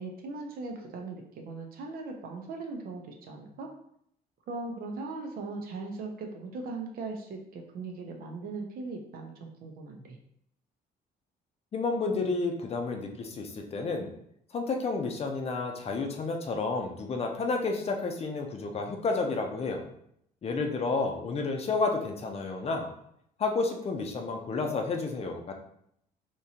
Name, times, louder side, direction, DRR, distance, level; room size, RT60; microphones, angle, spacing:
voice 1, 0.0-3.7 4.5-10.2, right 3 dB, 60° right, 2 dB, 0.7 m, -39 dB
voice 2, 11.7-14.1 14.5-19.8 20.4-22.9 23.4-25.5, left 3 dB, 35° left, 3 dB, 0.6 m, -31 dB
3.6 x 2.9 x 2.8 m, 0.71 s
cardioid pair, 110°, 17 cm